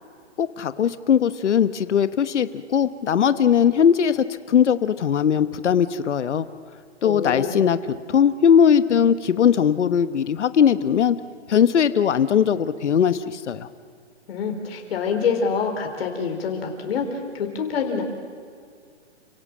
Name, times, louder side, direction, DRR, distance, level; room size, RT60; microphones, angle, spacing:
voice 1, 0.4-6.5 7.0-7.8 8.1-11.2 11.5-13.7, left 8 dB, 75° left, 13 dB, 1.2 m, -19 dB
voice 2, 7.0-7.5 7.9-8.0 14.3-18.0, left 6 dB, 55° left, 3 dB, 4.5 m, -26 dB
30.0 x 17.0 x 7.5 m, 2.2 s
hypercardioid pair, 145°, 35 cm